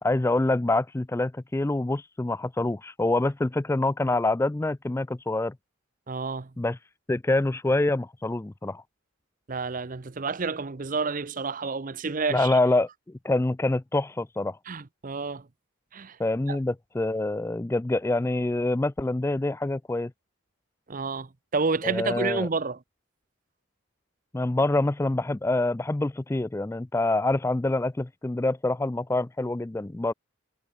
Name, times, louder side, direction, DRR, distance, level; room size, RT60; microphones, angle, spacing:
voice 1, 0.0-5.5 6.6-6.8 7.1-8.8 12.3-12.9 13.2-14.6 16.2-20.1 21.8-22.5 24.3-30.1, left 2 dB, 10° left, 0.3 m, -26 dB
voice 2, 6.1-6.5 9.5-12.6 14.7-15.5 15.9-16.2 16.5-16.6 20.9-22.8, right 4 dB, 40° right, 0.7 m, -30 dB
head